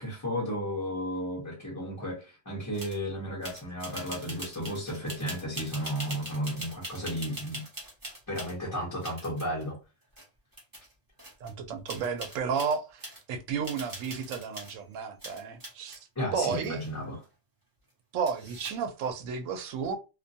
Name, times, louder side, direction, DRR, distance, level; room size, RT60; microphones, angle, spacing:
voice 1, 0.0-7.6 8.3-9.8 16.2-17.2, equal, 20° left, 0.8 m, -33 dB
sound 1, 2.7-3.0 3.4-8.5 9.0-9.6 10.2-10.3 10.5-10.9 11.2-11.5 11.9-13.2 13.6-14.8 15.2-16.0 16.5-17.2 18.3-18.9, right 1 dB, 20° right, 0.8 m, -42 dB
voice 2, 11.4-16.0 16.3-16.8 18.1-20.0, right 6 dB, 90° right, 0.9 m, -32 dB
2.4 x 2.2 x 2.6 m
omnidirectional pair, 1.3 m